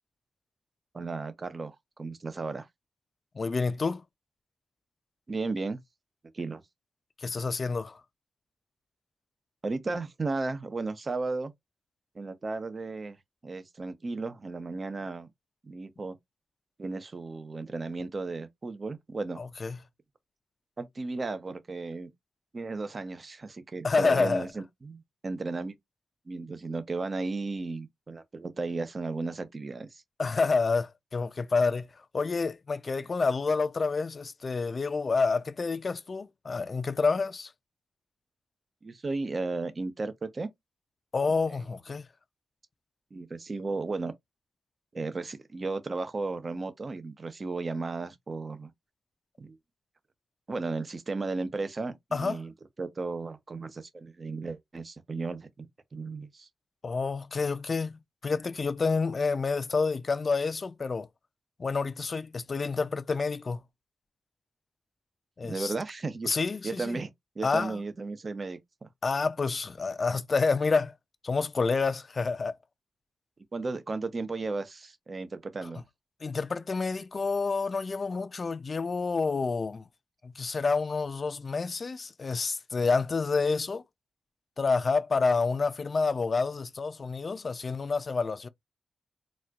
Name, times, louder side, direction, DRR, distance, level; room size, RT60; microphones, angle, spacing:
voice 1, 0.9-2.7 5.3-5.8 6.3-6.6 9.6-11.5 12.1-13.2 13.4-15.3 15.6-16.2 16.8-19.4 20.8-22.1 22.5-25.7 26.3-30.0 38.8-40.5 43.1-44.1 44.9-48.7 49.4-49.6 50.5-52.5 52.8-56.5 65.4-66.3 66.6-68.9 73.5-75.8, right 3 dB, 45° right, 0.7 m, -35 dB
voice 2, 3.3-4.0 7.2-8.0 19.4-19.8 23.8-24.5 30.2-37.5 41.1-42.1 52.1-52.4 56.8-61.1 61.6-63.6 65.4-65.7 66.3-67.0 67.4-67.8 69.0-71.0 71.2-72.6 75.6-75.7 76.2-79.9 80.2-83.8 84.6-88.5, left 4 dB, 50° left, 0.4 m, -28 dB
4.2 x 2.4 x 2.3 m
cardioid pair, 65°, 0 cm